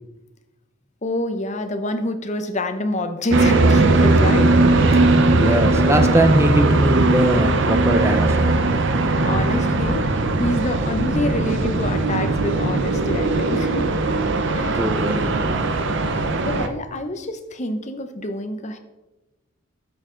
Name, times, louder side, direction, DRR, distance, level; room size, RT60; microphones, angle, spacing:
voice 1, 1.0-4.6 4.8-5.6 9.2-14.0 14.5-14.8 16.0-18.8, left 1 dB, 35° left, 7 dB, 0.8 m, -27 dB
sound 1, 3.3-16.7, right 2 dB, 60° right, 0.7 m, -19 dB
voice 2, 4.9-8.6 14.7-15.6, right 1 dB, 15° right, 7 dB, 0.7 m, -21 dB
11.0 x 6.7 x 3.8 m, 1.0 s
head